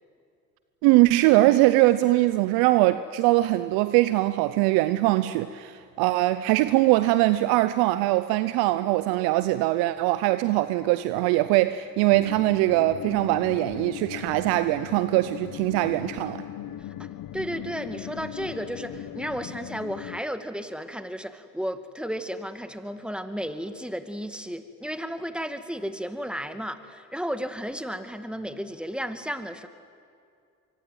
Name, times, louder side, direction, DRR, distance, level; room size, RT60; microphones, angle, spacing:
voice 1, 0.8-16.4, right 17 dB, 85° right, 0.7 m, -22 dB
sound 1, 12.1-20.2, left 11 dB, 65° left, 1.2 m, -39 dB
voice 2, 17.3-29.7, equal, 5° right, 2.4 m, -33 dB
24.5 x 24.0 x 9.4 m
hypercardioid pair, 50°, 37 cm